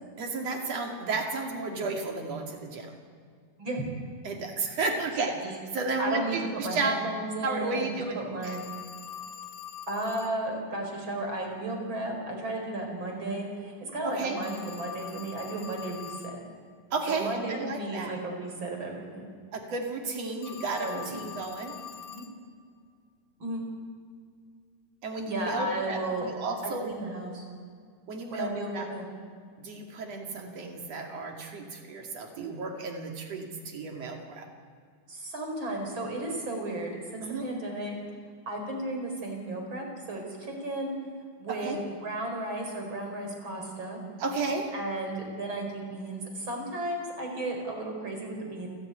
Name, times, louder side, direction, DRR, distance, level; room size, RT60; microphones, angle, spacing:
voice 1, 0.2-3.0 4.2-7.1 7.4-8.2 8.4-8.6 14.0-14.4 16.9-18.2 19.5-21.7 25.0-26.9 28.1-28.9 29.6-34.5 37.2-37.5 41.5-41.8 44.2-44.7, right 3 dB, 55° right, 2 dB, 3.5 m, -33 dB
voice 2, 6.0-7.8 8.1-8.6 9.9-16.4 17.1-19.3 20.8-21.2 22.1-22.2 23.4-23.6 25.2-26.3 26.6-27.4 28.3-29.0 35.1-37.9 38.5-40.9 41.4-41.8 42.0-44.0 44.7-48.7, right 1 dB, 35° right, 2 dB, 5.1 m, -34 dB
Telephone, 8.4-10.4 14.4-16.4 20.4-22.4, left 8 dB, 80° left, 3.1 m, -43 dB
29.0 x 12.5 x 9.3 m, 2.1 s
omnidirectional pair, 3.7 m